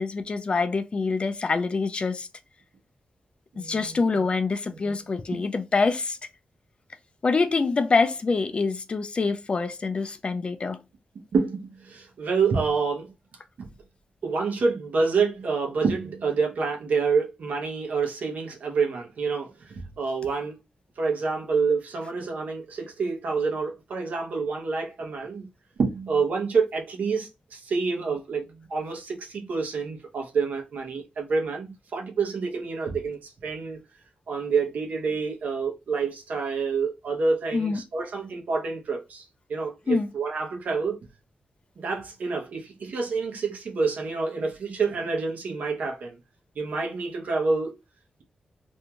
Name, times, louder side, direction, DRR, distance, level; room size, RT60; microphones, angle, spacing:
voice 1, 0.0-2.3 3.6-6.2 7.2-10.8 37.5-37.8 39.9-40.1, left 4 dB, 45° left, 0.4 m, -25 dB
voice 2, 3.5-4.0 4.8-4.9 5.3-5.4 11.3-13.1 13.6-13.7 14.2-20.6 21.0-25.5 25.8-33.8 34.3-39.2 39.5-41.0 41.8-46.2 46.6-47.7, right 4 dB, 75° right, 0.7 m, -28 dB
2.6 x 2.3 x 2.8 m
wide cardioid pair, 95°, 3 cm